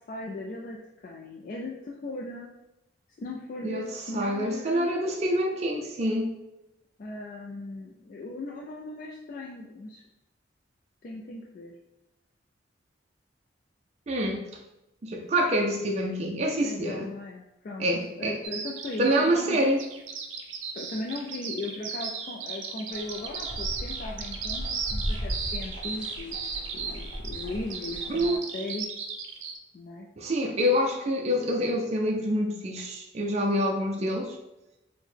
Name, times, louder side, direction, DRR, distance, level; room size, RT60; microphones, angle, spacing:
voice 1, 0.1-0.8 1.0-2.5 3.2-4.9 7.0-10.0 11.0-11.7 16.6-17.9 18.2-19.6 20.7-26.4 26.7-28.9 29.7-30.1, left 2 dB, 45° left, -1 dB, 0.3 m, -38 dB
voice 2, 3.6-6.3 14.1-14.4 15.0-17.1 17.8-18.4 19.0-19.8 28.1-28.4 30.2-34.4, equal, 35° right, 1 dB, 0.4 m, -26 dB
Bird vocalization bird call bird song, 18.4-29.6, right 6 dB, 85° right, 0.5 m, -35 dB
sound 1, 22.9-28.4, equal, 25° left, 0.9 m, -37 dB
4.5 x 2.1 x 3.3 m, 0.93 s
head